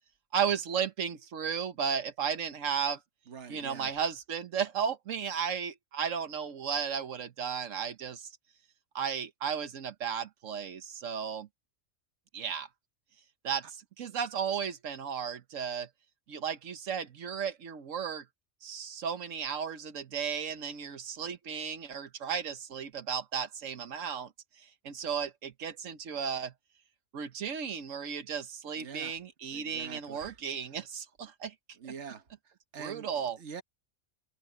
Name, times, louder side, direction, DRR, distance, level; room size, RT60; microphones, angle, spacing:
voice 1, 0.3-3.0 3.5-8.3 8.9-11.5 12.3-12.7 13.4-15.9 16.3-18.2 18.6-24.3 24.6-26.5 27.1-31.5 32.8-33.4, right 7 dB, 90° right, 1.4 m, -34 dB
voice 2, 3.3-3.9 28.8-29.1 29.5-30.3 31.8-32.2 32.7-33.1 33.4-33.6, right 6 dB, 65° right, 1.6 m, -44 dB
omnidirectional pair, 1.3 m